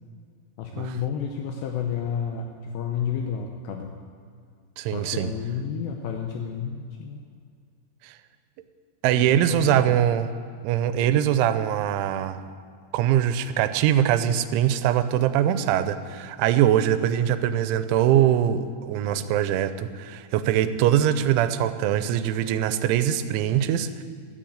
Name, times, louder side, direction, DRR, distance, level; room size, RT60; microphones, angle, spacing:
voice 1, 0.6-4.0 4.8-7.2 9.1-10.0, left 7 dB, 80° left, 3 dB, 2.8 m, -31 dB
voice 2, 4.8-5.3 8.0-8.2 9.0-10.3 10.6-12.4 12.9-24.0, right 10 dB, 90° right, 11 dB, 3.0 m, -22 dB
12.0 x 10.0 x 7.9 m, 2.2 s
omnidirectional pair, 5.4 m